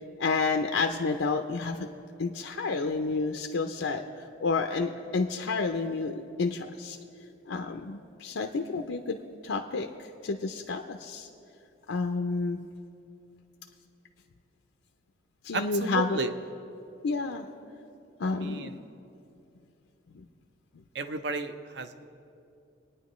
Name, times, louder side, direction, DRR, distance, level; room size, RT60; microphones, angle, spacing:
voice 1, 0.2-1.8 2.2-4.0 4.4-7.0 7.5-9.2 9.4-9.9 10.2-11.3 11.9-12.7 15.4-16.2 17.0-17.5 18.2-18.7 20.1-20.2, left 4 dB, 90° left, 4 dB, 0.5 m, -30 dB
voice 2, 15.5-16.3 18.2-18.7 20.9-22.1, right 4 dB, 60° right, 9 dB, 0.6 m, -33 dB
24.5 x 9.5 x 3.1 m, 2.7 s
head